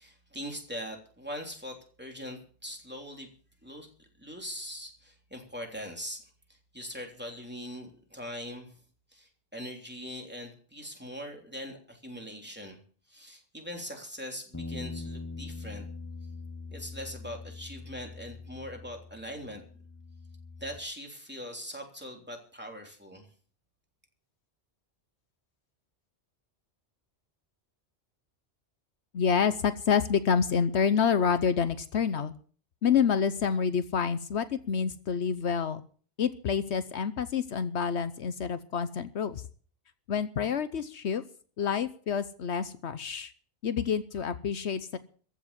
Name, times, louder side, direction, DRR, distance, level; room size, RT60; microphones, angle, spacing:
voice 1, 0.0-3.3 3.6-3.9 4.2-6.2 6.5-8.8 9.1-12.8 13.1-15.8 16.7-19.6 20.6-23.3, equal, 10° right, 1 dB, 3.3 m, -41 dB
sound 1, 14.5-20.8, left 3 dB, 20° left, 0.6 m, -42 dB
voice 2, 29.1-32.3 32.8-35.8 36.2-39.4 40.1-41.2 41.6-43.3 43.6-45.0, left 7 dB, 75° left, 12 dB, 1.1 m, -28 dB
14.5 x 7.2 x 9.8 m, 0.43 s
omnidirectional pair, 1.2 m